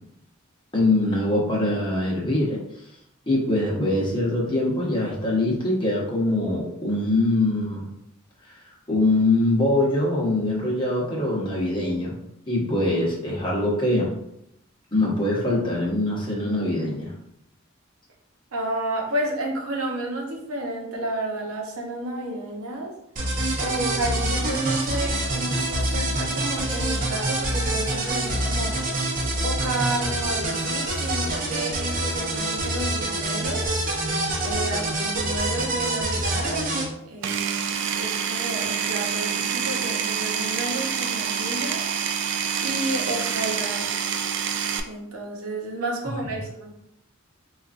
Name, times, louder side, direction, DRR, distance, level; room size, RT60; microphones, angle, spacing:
voice 1, 0.7-2.6 3.3-7.9 8.9-12.2 12.5-14.1 14.9-17.1, left 2 dB, 25° left, -4 dB, 0.9 m, -23 dB
voice 2, 18.5-23.0 23.6-28.8 29.4-33.7 34.4-36.7 37.0-41.8 42.6-44.0 44.9-46.7, right 1 dB, 90° right, 0 dB, 0.8 m, -31 dB
sound 1, 23.2-36.9, right 1 dB, 40° right, 0.7 m, -26 dB
Power tool, 37.2-44.8, right 7 dB, 60° right, 0.3 m, -27 dB
4.5 x 2.4 x 2.4 m, 0.80 s
head